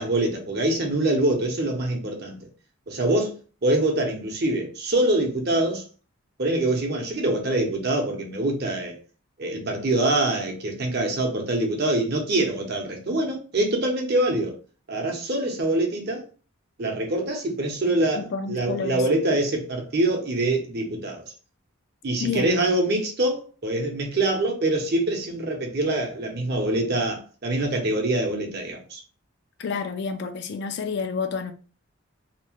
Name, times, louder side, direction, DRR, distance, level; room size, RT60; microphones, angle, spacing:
voice 1, 0.0-2.5 2.9-3.3 3.6-5.8 6.4-9.0 9.4-14.5 14.9-16.2 16.8-21.2 22.0-29.0, right 1 dB, 50° right, 0.6 m, -24 dB
voice 2, 18.2-19.0 22.2-22.6 29.6-31.5, left 5 dB, 50° left, 0.3 m, -29 dB
2.8 x 2.1 x 2.9 m
head